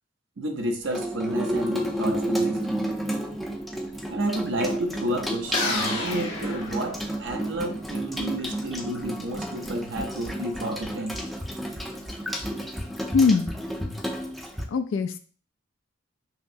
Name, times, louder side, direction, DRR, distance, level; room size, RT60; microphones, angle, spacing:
voice 1, 0.4-2.6 4.1-11.2, right 1 dB, 70° right, 4 dB, 0.7 m, -31 dB
Water tap faucet / Sink (filling or washing), 0.8-14.6, right 1 dB, ahead, 0.5 m, -31 dB
sound 1, 5.5-7.5, left 2 dB, 90° left, 1.4 m, -30 dB
voice 2, 13.1-13.6 14.7-15.2, left 5 dB, 70° left, 9 dB, 0.3 m, -21 dB
5.7 x 2.0 x 2.6 m, 0.42 s
head